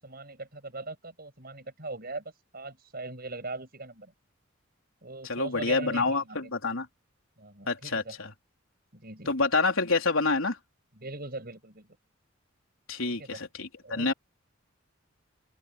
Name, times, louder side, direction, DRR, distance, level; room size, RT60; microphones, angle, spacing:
voice 1, 0.0-2.2 2.5-4.1 5.0-6.5 7.4-8.2 8.9-9.3 10.9-12.0 13.0-13.4 13.8-14.1, right 3 dB, 45° right, 6.0 m, -40 dB
voice 2, 5.2-6.9 7.7-8.3 9.3-10.6 12.9-14.1, left 3 dB, 80° left, 3.8 m, -27 dB
open air
head